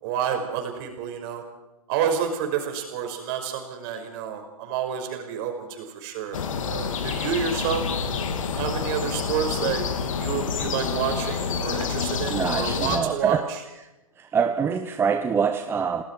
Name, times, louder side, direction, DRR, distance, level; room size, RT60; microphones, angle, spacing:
voice 1, 0.0-1.4 1.9-6.4 6.7-7.9 8.6-9.9 10.2-13.4, right 8 dB, 40° right, 4 dB, 5.7 m, -29 dB
sound 1, 6.3-13.0, left 6 dB, 60° left, 2.6 m, -28 dB
voice 2, 12.3-13.5 14.2-16.0, right 6 dB, 10° right, 8 dB, 0.8 m, -25 dB
29.0 x 19.0 x 4.7 m, 1.0 s
hypercardioid pair, 125°, 19 cm